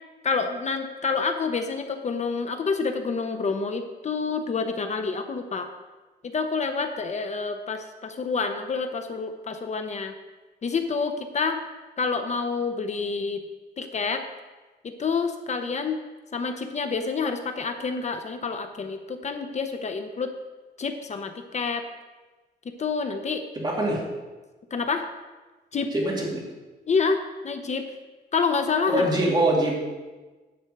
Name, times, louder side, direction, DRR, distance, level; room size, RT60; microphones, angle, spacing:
voice 1, 0.2-5.7 6.2-10.1 10.6-11.6 12.0-13.4 13.8-14.2 14.8-16.0 16.3-20.3 20.8-21.8 22.8-23.4 24.7-25.1 25.7-25.9 26.9-27.9 28.3-29.1, left 4 dB, 40° left, 7 dB, 0.7 m, -28 dB
voice 2, 23.6-24.0 25.9-26.4 28.9-29.8, right 1 dB, 25° right, -3 dB, 2.3 m, -23 dB
10.0 x 4.3 x 7.7 m, 1.2 s
wide cardioid pair, 155°, 18 cm